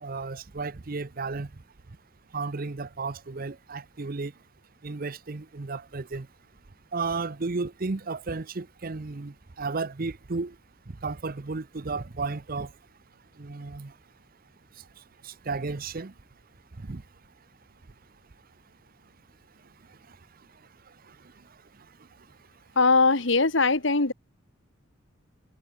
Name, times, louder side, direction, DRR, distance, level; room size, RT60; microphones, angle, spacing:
voice 1, 0.0-1.5 2.3-4.3 4.8-6.3 6.9-10.5 11.0-12.7 13.4-13.9 15.2-16.1 16.8-17.0, right 3 dB, 45° right, 0.7 m, -33 dB
voice 2, 22.8-24.1, left 3 dB, 60° left, 1.8 m, -21 dB
head